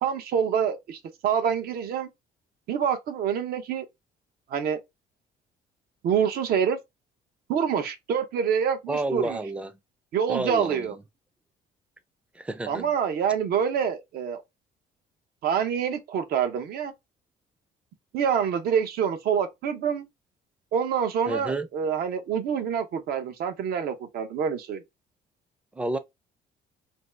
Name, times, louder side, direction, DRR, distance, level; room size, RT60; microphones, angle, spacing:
voice 1, 0.0-2.1 2.7-3.9 4.5-4.8 6.0-6.8 7.5-9.4 10.1-11.0 12.7-14.4 15.4-16.9 18.1-20.1 20.7-24.8, right 7 dB, 65° right, 0.7 m, -26 dB
voice 2, 8.9-9.7 10.3-11.0 12.3-12.9 21.3-21.7 25.7-26.0, right 2 dB, 5° right, 0.4 m, -30 dB
2.6 x 2.3 x 3.1 m
cardioid pair, 110°, 17 cm